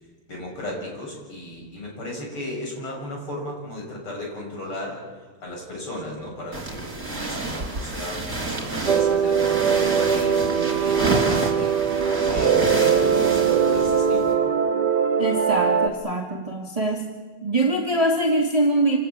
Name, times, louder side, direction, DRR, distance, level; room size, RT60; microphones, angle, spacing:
voice 1, 0.3-5.1 5.4-11.8 12.3-14.5, left 1 dB, 80° left, 0 dB, 7.9 m, -36 dB
sound 1, 6.5-14.3, right 2 dB, 35° right, 4.8 m, -29 dB
sound 2, 8.9-15.9, right 7 dB, 50° right, 2.1 m, -21 dB
voice 2, 15.2-17.1 17.4-19.0, right 1 dB, 15° right, 0 dB, 2.3 m, -23 dB
27.0 x 18.0 x 8.9 m, 1.5 s
omnidirectional pair, 2.3 m